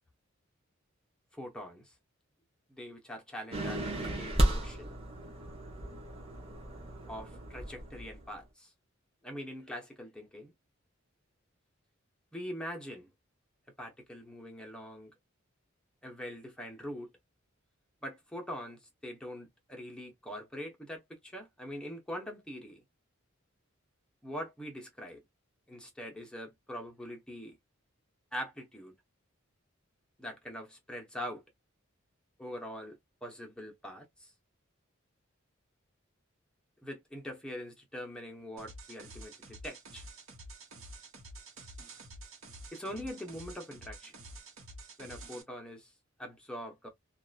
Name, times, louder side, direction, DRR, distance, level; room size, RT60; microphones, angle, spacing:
voice 1, 1.3-1.9 2.7-5.0 7.1-8.7 9.2-10.5 12.3-13.1 13.8-15.1 16.0-17.1 18.0-22.8 24.2-25.2 25.7-27.6 28.3-28.9 30.2-31.4 32.4-34.3 36.8-40.1 42.7-44.1 45.0-45.9 46.2-46.9, equal, 5° left, 0.9 m, -43 dB
sound 1, 3.5-8.4, right 1 dB, 30° right, 0.9 m, -34 dB
sound 2, 38.6-45.4, right 2 dB, 80° right, 1.1 m, -49 dB
2.8 x 2.4 x 2.3 m
head